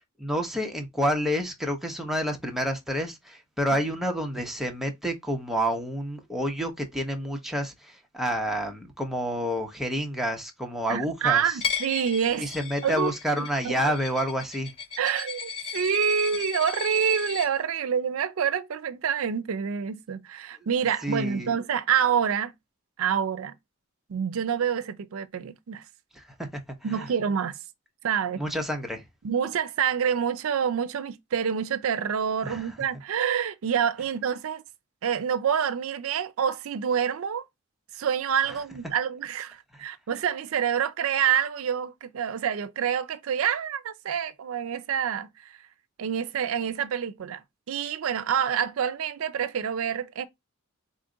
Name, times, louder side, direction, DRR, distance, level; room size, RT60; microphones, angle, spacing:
voice 1, 0.2-11.6 12.4-14.7 21.0-21.5 26.1-26.6 26.9-27.1 28.4-29.0 32.4-32.7, equal, ahead, 0.8 m, -29 dB
voice 2, 10.9-12.5 12.8-13.9 15.0-22.5 23.0-23.5 24.1-25.8 26.8-27.6 28.0-28.4 29.2-34.6 35.0-37.4 37.9-45.6 46.0-47.4 47.7-50.3, right 8 dB, 80° right, 0.4 m, -27 dB
Coin (dropping), 11.6-17.5, left 7 dB, 30° left, 1.9 m, -35 dB
4.1 x 2.4 x 3.7 m
head